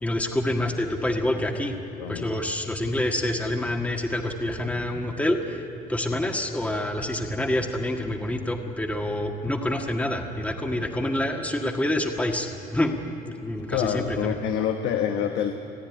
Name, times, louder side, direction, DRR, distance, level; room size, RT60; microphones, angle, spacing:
voice 1, 0.0-1.8 2.1-14.3, left 1 dB, 10° left, 3 dB, 1.7 m, -27 dB
voice 2, 1.9-2.3 13.7-15.5, left 9 dB, 90° left, 5 dB, 1.1 m, -27 dB
29.5 x 10.0 x 9.8 m, 2.8 s
cardioid pair, 110°, 17 cm